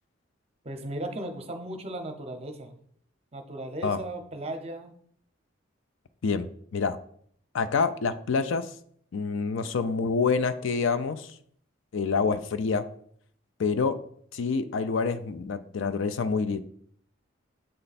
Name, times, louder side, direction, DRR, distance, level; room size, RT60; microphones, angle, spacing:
voice 1, 0.6-2.8 3.3-4.9, right 1 dB, 30° right, 6 dB, 0.6 m, -36 dB
voice 2, 6.2-7.0 7.5-8.7 9.1-11.3 11.9-12.8 13.6-14.0 14.3-16.6, left 5 dB, 70° left, 10 dB, 0.4 m, -27 dB
7.8 x 3.3 x 4.1 m, 0.63 s
head